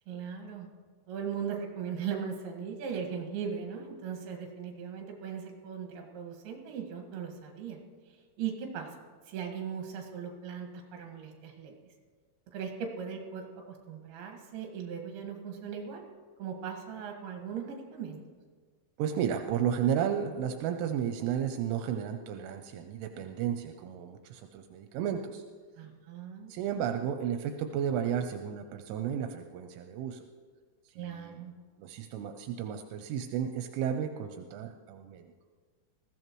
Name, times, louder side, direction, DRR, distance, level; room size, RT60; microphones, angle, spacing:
voice 1, 0.1-0.7 1.1-7.8 8.1-11.9 12.5-16.0 16.4-18.2 25.8-26.5 30.9-31.5, right 7 dB, 60° right, 2 dB, 3.3 m, -39 dB
voice 2, 19.0-25.4 26.5-30.2 31.0-31.4 31.8-35.3, right 9 dB, 85° right, 6 dB, 3.1 m, -33 dB
20.5 x 15.5 x 3.1 m, 1.5 s
omnidirectional pair, 5.6 m